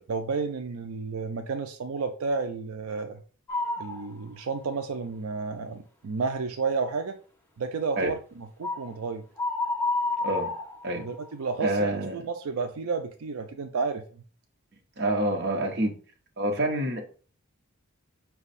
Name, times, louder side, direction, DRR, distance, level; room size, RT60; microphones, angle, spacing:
voice 1, 0.1-3.2 3.8-7.2 7.6-9.2 11.0-14.2, right 4 dB, 80° right, 0.5 m, -31 dB
sound 1, 3.5-4.1 4.6-4.7 8.6-8.9 9.4-11.3, left 2 dB, 10° left, 0.7 m, -29 dB
voice 2, 11.6-12.2 15.0-15.9 16.4-17.0, right 1 dB, 50° right, 0.9 m, -27 dB
5.2 x 2.3 x 4.1 m
head